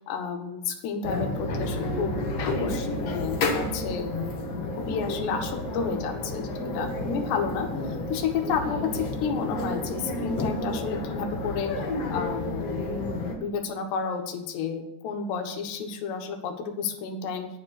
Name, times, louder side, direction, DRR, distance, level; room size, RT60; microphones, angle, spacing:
voice 1, 0.0-2.2 2.4-4.1 4.7-11.7 12.1-12.9 13.3-17.5, left 6 dB, 80° left, 5 dB, 3.4 m, -31 dB
sound 1, 1.0-13.4, left 2 dB, 55° left, 1.9 m, -31 dB
9.5 x 8.4 x 6.4 m, 0.94 s
omnidirectional pair, 4.9 m